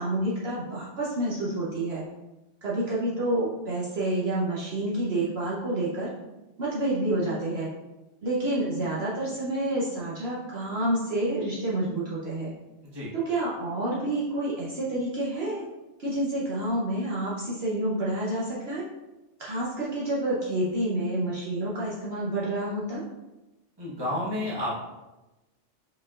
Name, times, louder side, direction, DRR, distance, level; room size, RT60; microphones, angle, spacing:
voice 1, 0.0-2.0 2.6-6.1 6.6-7.7 8.2-12.5 13.2-15.7 16.0-18.8 19.4-23.0, right 1 dB, 60° right, -6 dB, 1.0 m, -28 dB
voice 2, 23.8-24.7, left 1 dB, 20° right, -7 dB, 1.2 m, -30 dB
5.0 x 4.2 x 2.4 m, 1.0 s
omnidirectional pair, 1.3 m